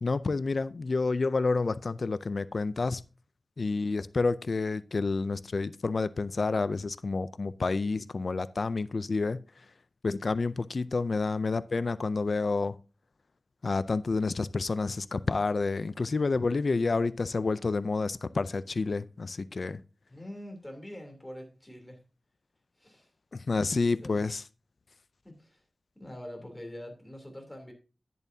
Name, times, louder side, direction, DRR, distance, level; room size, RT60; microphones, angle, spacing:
voice 1, 0.0-3.0 3.6-9.4 10.0-12.8 13.6-19.8 23.3-24.4, left 3 dB, 55° left, 0.4 m, -29 dB
voice 2, 20.1-22.0 22.8-23.1 24.0-24.2 25.2-25.6 25.9-27.7, left 1 dB, 10° left, 3.2 m, -44 dB
10.5 x 10.0 x 2.7 m
wide cardioid pair, 100°, 0 cm